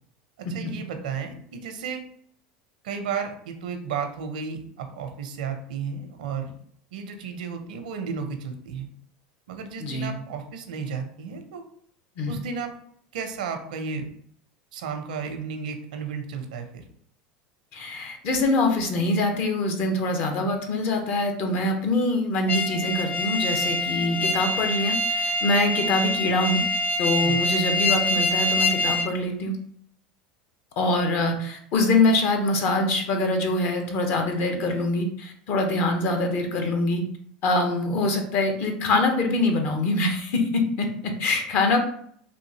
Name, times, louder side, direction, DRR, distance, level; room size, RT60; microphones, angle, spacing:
voice 1, 0.4-2.0 2.8-6.5 6.9-8.9 9.5-11.6 12.3-12.7 13.1-14.1 14.7-16.8 27.2-27.4, right 6 dB, 80° right, 6 dB, 0.6 m, -33 dB
voice 2, 9.8-10.1 12.2-12.4 17.7-26.6 27.0-29.6 30.8-37.0 37.4-41.8, left 2 dB, 55° left, 4 dB, 0.8 m, -24 dB
sound 1, 22.5-29.1, left 2 dB, 35° left, 0.4 m, -25 dB
3.5 x 2.6 x 2.8 m, 0.63 s
hypercardioid pair, 95°, 4 cm